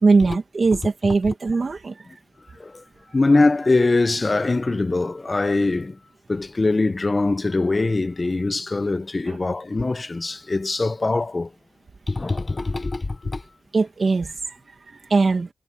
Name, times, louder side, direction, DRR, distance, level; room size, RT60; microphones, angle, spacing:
voice 1, 0.0-2.1 9.3-9.4 13.7-15.5, right 4 dB, 50° right, 2.1 m, -21 dB
voice 2, 3.1-6.0 6.3-11.5 12.1-13.4, left 3 dB, 30° left, 0.8 m, -22 dB
wide cardioid pair, 115°, 0 cm